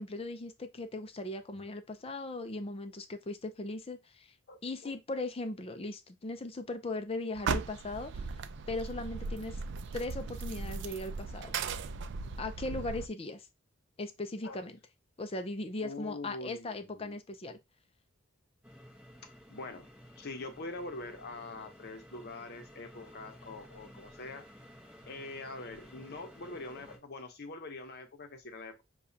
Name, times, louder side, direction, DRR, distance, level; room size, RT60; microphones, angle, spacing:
voice 1, 0.0-4.3 4.6-8.4 8.7-9.6 9.9-11.6 12.4-13.5 14.0-14.8 15.2-17.6, left 2 dB, 30° left, 0.5 m, -38 dB
voice 2, 4.5-5.0 14.4-14.6 15.8-17.1 19.5-19.9 20.2-24.4 25.1-28.8, left 2 dB, 50° left, 0.9 m, -44 dB
sound 1, 7.3-13.1, right 5 dB, 60° right, 0.4 m, -37 dB
sound 2, 18.6-27.0, equal, 5° right, 0.9 m, -54 dB
6.8 x 2.4 x 2.8 m
head